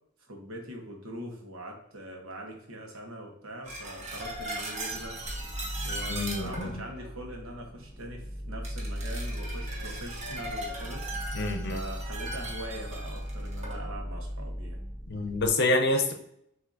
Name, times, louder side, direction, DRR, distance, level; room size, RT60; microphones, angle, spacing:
voice 1, 0.3-5.2 5.8-11.1 11.7-14.8, right 1 dB, 85° right, 1 dB, 1.1 m, -42 dB
sound 1, 3.6-7.1 8.6-13.9 14.1-14.3, right 1 dB, 35° right, 0.9 m, -39 dB
sound 2, 5.2-15.5, equal, 5° right, 0.4 m, -38 dB
voice 2, 6.1-6.8 11.3-11.8 15.1-16.1, left 2 dB, 55° left, 5 dB, 0.6 m, -27 dB
6.0 x 2.7 x 2.6 m, 0.73 s
head